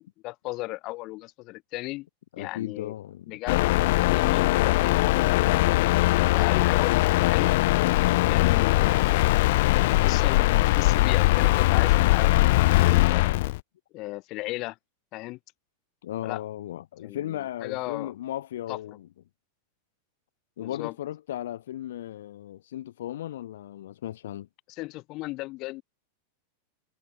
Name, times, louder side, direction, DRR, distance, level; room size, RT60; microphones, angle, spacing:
voice 1, 0.0-2.1 2.4-2.9 3.3-7.5 8.3-9.3 10.0-13.3 13.9-14.8 15.1-15.4 16.2-16.4 17.0-18.1 18.7-18.8 20.6-20.9 24.7-25.8, left 21 dB, 35° left, 4.6 m, -36 dB
voice 2, 2.3-3.4 16.0-19.1 20.6-24.5, left 12 dB, 80° left, 3.3 m, -36 dB
sound 1, 3.5-13.6, left 19 dB, 55° left, 0.3 m, -21 dB
supercardioid pair, 165°, 0 cm